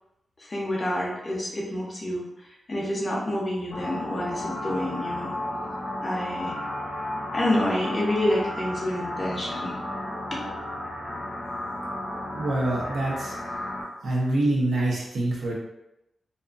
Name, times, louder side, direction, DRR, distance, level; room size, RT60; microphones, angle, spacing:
voice 1, 0.5-2.2 2.7-5.3 6.0-6.6 7.3-9.8 10.3-10.4, left 1 dB, 30° left, -4 dB, 0.7 m, -28 dB
sound 1, 3.7-13.8, left 1 dB, 60° left, 0.9 m, -33 dB
voice 2, 12.3-13.5 14.0-15.5, right 1 dB, 75° right, -4 dB, 0.8 m, -26 dB
2.5 x 2.5 x 2.3 m, 0.88 s
wide cardioid pair, 120°, 0 cm